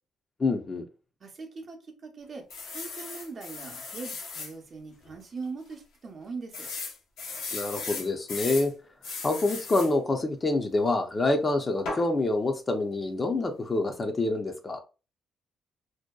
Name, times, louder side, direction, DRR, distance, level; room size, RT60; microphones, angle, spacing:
voice 1, 0.4-0.8 7.5-8.7 9.2-14.8, left 2 dB, 30° left, 0.5 m, -27 dB
voice 2, 1.2-2.4 2.7-6.7, right 4 dB, 45° right, 0.7 m, -41 dB
sound 1, 2.5-4.5 5.1-5.2 5.4-5.5 6.5-8.7 9.0-9.9 11.9-12.1, left 4 dB, 85° left, 0.8 m, -37 dB
2.7 x 2.1 x 2.2 m
cardioid pair, 90°, 0 cm